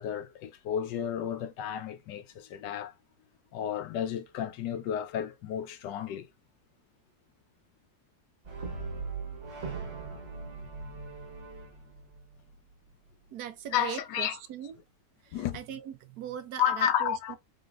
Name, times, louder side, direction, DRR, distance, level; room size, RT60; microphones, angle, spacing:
voice 1, 0.0-2.9 3.5-6.3 13.7-14.4 15.3-15.6 16.6-17.4, left 9 dB, 85° left, 1.3 m, -32 dB
Brass instrument, 8.4-12.7, right 4 dB, 50° right, 1.3 m, -40 dB
voice 2, 13.3-14.7 15.2-17.4, right 10 dB, 70° right, 1.1 m, -40 dB
4.0 x 3.8 x 2.4 m
omnidirectional pair, 1.8 m